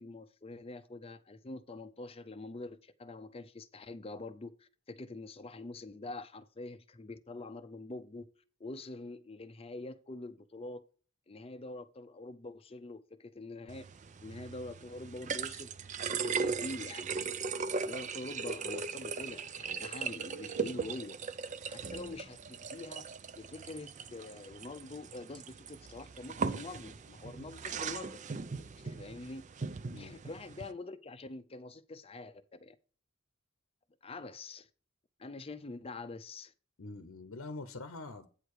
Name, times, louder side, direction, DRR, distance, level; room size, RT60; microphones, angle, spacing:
voice 1, 0.0-8.3 8.6-10.8 11.3-13.9 14.2-15.7 16.1-17.3 17.8-21.2 21.7-23.1 23.3-28.2 28.8-29.5 30.0-32.8 34.0-34.7 35.2-36.5, left 2 dB, 30° left, 0.6 m, -45 dB
sound 1, 13.7-30.7, right 5 dB, 35° right, 0.5 m, -39 dB
voice 2, 36.8-38.3, left 3 dB, 85° left, 0.8 m, -44 dB
9.0 x 4.7 x 4.8 m
head